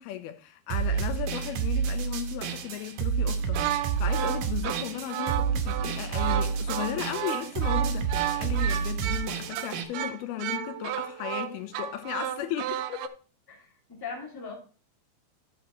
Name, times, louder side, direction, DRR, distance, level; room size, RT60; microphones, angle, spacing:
voice 1, 0.0-13.1, left 12 dB, 85° left, 2.7 m, -36 dB
sound 1, 0.7-9.8, right 6 dB, 70° right, 2.0 m, -29 dB
sound 2, 3.4-13.1, right 12 dB, 90° right, 1.8 m, -33 dB
voice 2, 13.5-14.5, left 5 dB, 10° left, 1.8 m, -40 dB
12.5 x 6.4 x 3.1 m
omnidirectional pair, 4.5 m